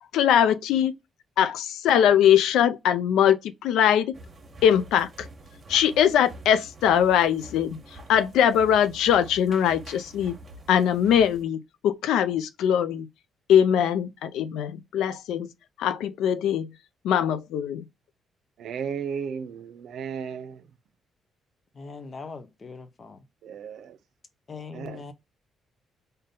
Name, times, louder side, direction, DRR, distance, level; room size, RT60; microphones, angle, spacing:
voice 1, 0.1-0.9 1.4-4.1 4.6-5.1 5.7-7.8 8.1-10.4 10.7-13.1 13.5-15.5 15.8-16.7 17.0-17.8, left 9 dB, 85° left, 0.4 m, -21 dB
sound 1, 4.1-11.4, right 1 dB, 35° right, 1.3 m, -46 dB
voice 2, 18.6-20.6 23.4-24.0 24.7-25.0, right 7 dB, 70° right, 0.7 m, -34 dB
voice 3, 21.7-23.2 24.5-25.1, left 4 dB, 40° left, 0.7 m, -41 dB
3.7 x 2.6 x 3.7 m
cardioid pair, 90°, 0 cm